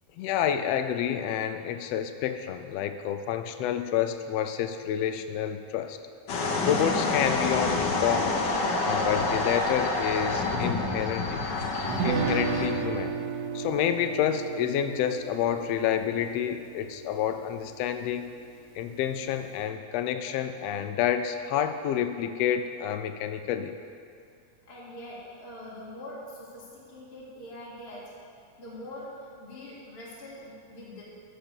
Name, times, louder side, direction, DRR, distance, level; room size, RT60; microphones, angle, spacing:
voice 1, 0.2-6.0 6.6-8.4 8.8-11.4 12.0-13.1 13.5-18.3 18.7-23.7, left 9 dB, 85° left, 8 dB, 1.4 m, -29 dB
sound 1, 6.3-12.7, left 3 dB, 65° left, 1.1 m, -28 dB
Guitar, 11.9-18.0, right 6 dB, 80° right, 2.1 m, -33 dB
voice 2, 24.7-28.1 28.6-31.0, left 1 dB, 20° left, -7 dB, 2.1 m, -43 dB
13.5 x 5.5 x 7.0 m, 2.4 s
omnidirectional pair, 3.4 m